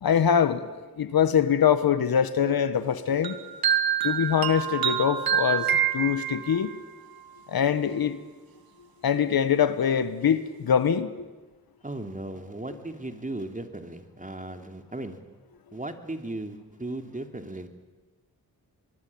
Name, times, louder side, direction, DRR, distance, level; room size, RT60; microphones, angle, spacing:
voice 1, 0.0-3.4 4.0-6.7 7.5-8.2 9.0-11.1, left 8 dB, 85° left, 12 dB, 1.4 m, -23 dB
sound 1, 3.2-6.7, right 8 dB, 85° right, 2.0 m, -26 dB
voice 2, 11.8-15.2 15.7-17.7, right 2 dB, 20° right, 6 dB, 3.0 m, -36 dB
24.0 x 22.5 x 8.7 m, 1.2 s
cardioid pair, 55°, 35 cm